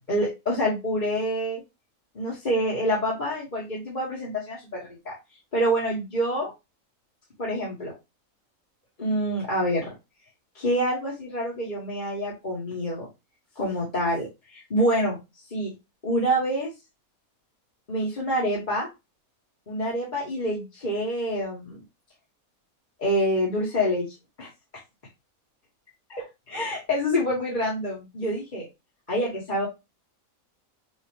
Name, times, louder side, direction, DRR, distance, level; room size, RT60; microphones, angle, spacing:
voice 1, 0.1-1.6 2.1-5.2 5.5-6.5 7.4-7.9 9.0-9.9 10.5-13.1 13.6-15.2 15.5-15.7 16.0-16.7 17.9-18.9 19.7-21.8 23.0-24.1 24.4-24.5 26.1-28.7 29.1-29.7, equal, 35° left, -5 dB, 1.5 m, -27 dB
6.2 x 2.5 x 3.1 m, 0.23 s
omnidirectional pair, 1.5 m